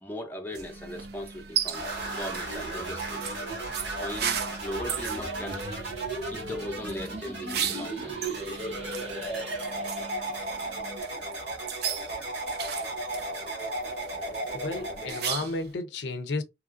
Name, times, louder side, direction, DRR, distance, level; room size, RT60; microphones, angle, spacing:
voice 1, 0.0-3.2 4.0-5.6 6.3-8.2, left 1 dB, 10° left, 0.5 m, -38 dB
sound 1, 0.5-15.7, right 8 dB, 60° right, 0.4 m, -37 dB
sound 2, 0.6-11.0, right 2 dB, 35° right, 0.8 m, -46 dB
sound 3, 1.7-15.3, right 2 dB, 80° right, 1.7 m, -35 dB
voice 2, 14.5-16.4, left 3 dB, 75° left, 0.5 m, -32 dB
2.8 x 2.4 x 2.4 m
head